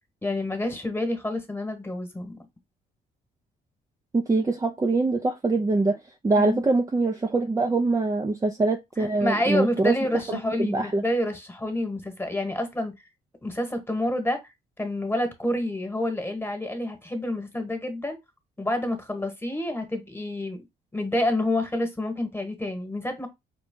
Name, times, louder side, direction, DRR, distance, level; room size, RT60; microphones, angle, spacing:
voice 1, 0.2-2.4 6.4-6.6 9.0-12.9 13.4-14.4 14.8-18.2 18.6-20.6 20.9-23.3, left 1 dB, 10° left, 1.3 m, -28 dB
voice 2, 4.1-10.0 10.3-11.0, right 3 dB, 15° right, 0.5 m, -24 dB
5.1 x 2.3 x 3.7 m
cardioid pair, 90°, 20 cm